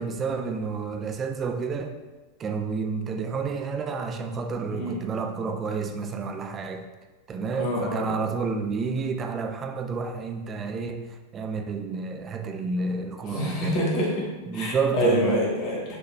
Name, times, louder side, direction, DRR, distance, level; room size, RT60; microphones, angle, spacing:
voice 1, 0.0-2.0 2.4-6.9 7.3-13.8 14.5-15.5, right 4 dB, 25° right, 6 dB, 0.4 m, -30 dB
voice 2, 4.7-5.0 7.5-8.2 13.3-14.3 14.5-16.0, equal, 40° left, -3 dB, 1.2 m, -26 dB
5.9 x 2.9 x 3.1 m, 1.2 s
figure-of-eight pair, 90°, 0 cm